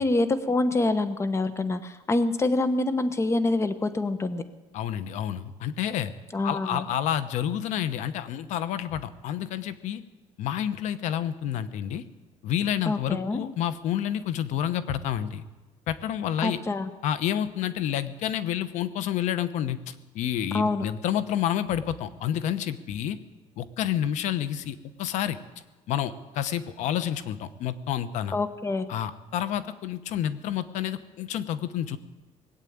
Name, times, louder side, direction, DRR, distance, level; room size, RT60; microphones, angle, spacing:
voice 1, 0.0-4.4 6.3-6.9 12.9-13.4 16.4-16.9 20.5-20.9 28.3-28.9, left 2 dB, 20° left, 12 dB, 1.1 m, -26 dB
voice 2, 4.7-6.1 6.4-10.0 10.4-12.0 12.4-15.4 15.9-16.6 17.0-23.2 23.6-25.4 25.9-28.4 28.9-32.0, left 10 dB, 70° left, 13 dB, 1.0 m, -29 dB
19.5 x 8.2 x 8.8 m, 1.2 s
cardioid pair, 115°, 13 cm